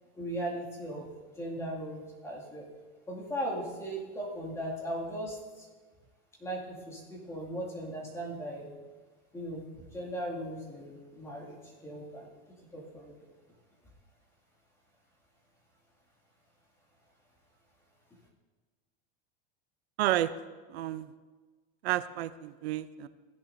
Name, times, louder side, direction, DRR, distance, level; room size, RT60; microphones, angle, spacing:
voice 1, 0.1-1.1 1.4-2.7 3.1-5.7 6.4-8.7 9.3-12.3 12.7-13.3, right 1 dB, 10° left, -3 dB, 2.2 m, -38 dB
voice 2, 20.0-20.3 20.7-21.1 21.8-23.1, right 14 dB, 85° right, 13 dB, 0.6 m, -30 dB
16.0 x 10.5 x 2.6 m, 1.4 s
supercardioid pair, 160°, 30 cm